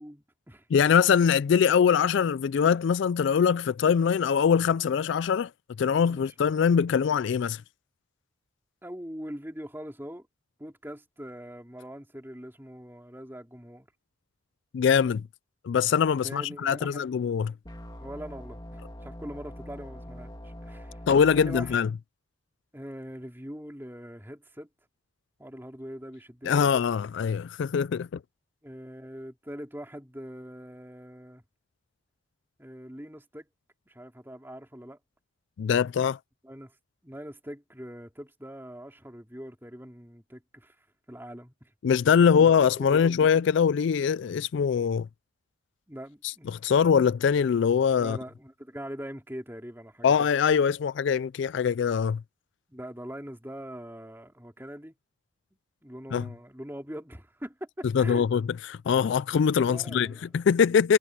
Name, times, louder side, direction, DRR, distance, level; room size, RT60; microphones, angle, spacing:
voice 1, 0.0-0.7 6.0-6.2 8.8-10.3 10.6-13.9 16.2-17.1 18.0-21.0 21.3-21.8 22.7-24.7 25.4-26.7 28.6-31.4 32.6-33.5 33.9-35.0 36.4-36.8 37.0-40.8 41.1-41.7 42.3-43.3 45.9-46.5 46.8-47.0 48.0-50.3 52.7-54.9 55.8-58.3 59.7-60.3, equal, 10° right, 3.5 m, -42 dB
voice 2, 0.7-5.5 5.8-7.6 14.7-15.2 15.6-17.5 21.1-21.9 26.4-28.1 35.6-36.2 41.8-45.1 46.2-48.2 50.0-52.2 56.1-56.3 57.9-60.1 60.3-61.0, left 7 dB, 60° left, 0.3 m, -23 dB
sound 1, 17.6-21.8, left 1 dB, 20° left, 1.9 m, -43 dB
head